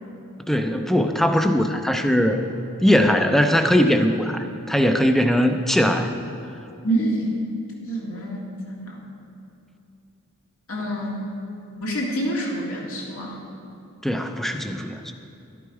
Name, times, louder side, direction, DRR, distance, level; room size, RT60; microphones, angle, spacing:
voice 1, 0.5-2.4 2.8-6.1 14.0-15.0, equal, ahead, 6 dB, 0.5 m, -20 dB
voice 2, 6.8-7.2 7.9-8.4 8.7-9.0 10.7-11.1 11.8-13.4, right 1 dB, 70° left, -3 dB, 2.1 m, -26 dB
12.0 x 11.0 x 4.8 m, 2.7 s
head